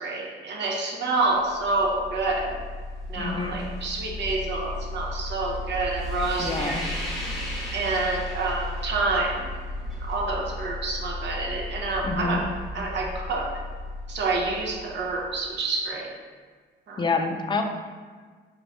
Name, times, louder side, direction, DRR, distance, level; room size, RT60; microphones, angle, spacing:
voice 1, 0.0-2.6 3.1-7.0 7.7-9.4 10.0-12.5 12.7-13.6 14.1-16.1 16.9-17.1, right 3 dB, 60° right, -1 dB, 0.8 m, -28 dB
sound 1, 1.4-15.5, left 1 dB, ahead, 0.9 m, -35 dB
voice 2, 3.2-3.6 6.4-6.9 12.0-12.4 17.0-17.6, left 4 dB, 25° left, 4 dB, 0.4 m, -27 dB
4.3 x 3.1 x 2.6 m, 1.5 s
cardioid pair, 90°, 20 cm